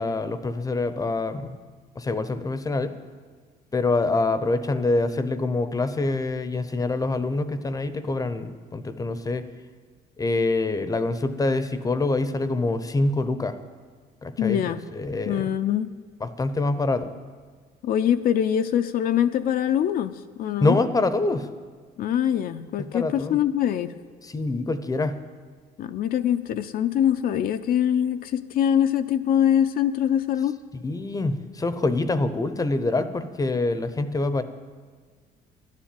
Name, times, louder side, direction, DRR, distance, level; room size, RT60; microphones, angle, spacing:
voice 1, 0.0-1.6 2.0-2.9 3.7-9.4 10.2-13.6 14.2-15.5 16.2-17.1 20.6-21.5 22.9-23.4 24.2-25.2 30.8-34.4, left 2 dB, 20° left, 11 dB, 0.7 m, -25 dB
voice 2, 14.4-14.8 15.2-15.9 17.8-20.8 22.0-23.9 25.8-30.6, left 10 dB, 60° left, 8 dB, 0.5 m, -23 dB
12.0 x 7.4 x 9.0 m, 1.5 s
cardioid pair, 110°, 17 cm